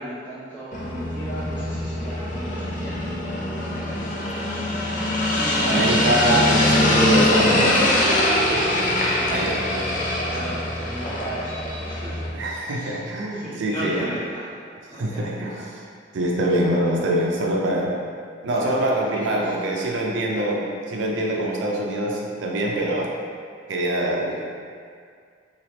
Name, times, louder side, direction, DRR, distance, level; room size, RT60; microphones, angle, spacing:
voice 1, 0.0-4.0 5.3-6.5 8.6-9.3 9.6-9.9 10.2-12.2 12.7-14.6 14.9-15.6 16.6-17.1 18.5-19.5, equal, 10° left, -16 dB, 1.1 m, -36 dB
sound 1, 0.7-12.3, left 1 dB, 45° left, 0.4 m, -23 dB
voice 2, 5.7-7.8 8.5-8.7 9.3-9.8 12.3-14.1 14.9-15.8 16.1-17.9 18.4-23.1 23.7-24.4, right 1 dB, 85° right, -1 dB, 0.5 m, -24 dB
3.2 x 2.3 x 2.8 m, 2.2 s
head